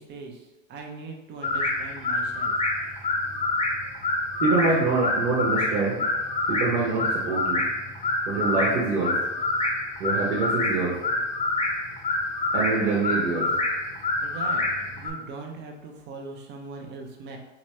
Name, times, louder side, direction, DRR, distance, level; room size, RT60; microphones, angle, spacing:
voice 1, 0.0-2.6 14.2-17.4, right 4 dB, 30° right, 2 dB, 0.6 m, -40 dB
sound 1, 1.4-15.1, left 2 dB, 20° left, 0.8 m, -27 dB
voice 2, 4.4-6.0 6.5-7.6 8.3-9.2 10.0-11.0 12.5-13.5, right 3 dB, 70° right, -4 dB, 1.1 m, -25 dB
3.1 x 3.0 x 3.1 m, 1.0 s
hypercardioid pair, 110°, 38 cm